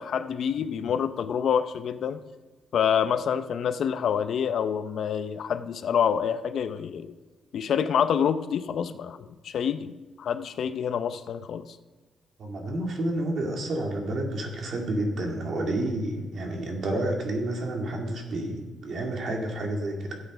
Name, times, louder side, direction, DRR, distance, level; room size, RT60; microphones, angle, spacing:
voice 1, 0.0-2.2 2.7-7.1 7.5-11.7, left 8 dB, 60° left, 11 dB, 0.6 m, -27 dB
voice 2, 12.4-20.2, right 1 dB, 50° right, 2 dB, 2.2 m, -30 dB
12.5 x 8.1 x 5.4 m, 1.3 s
cardioid pair, 135°, 0 cm